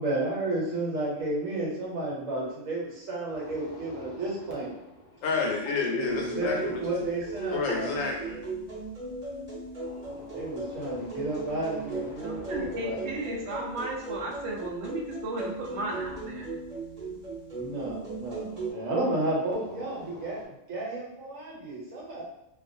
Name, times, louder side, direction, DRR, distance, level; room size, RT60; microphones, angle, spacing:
voice 1, 0.0-4.7 5.9-7.9 10.1-13.0 17.5-20.4 20.7-22.2, right 2 dB, 80° right, -4 dB, 1.2 m, -32 dB
sound 1, 3.3-6.4 9.8-15.2 18.6-20.5, left 1 dB, 70° left, 0.3 m, -48 dB
voice 2, 5.2-6.8 7.5-8.4, left 4 dB, 90° left, 0 dB, 1.0 m, -29 dB
sound 2, 6.1-18.7, right 3 dB, 35° right, 0.8 m, -38 dB
voice 3, 12.2-16.5, right 1 dB, 65° right, -1 dB, 0.8 m, -35 dB
2.4 x 2.2 x 2.5 m, 0.84 s
omnidirectional pair, 1.3 m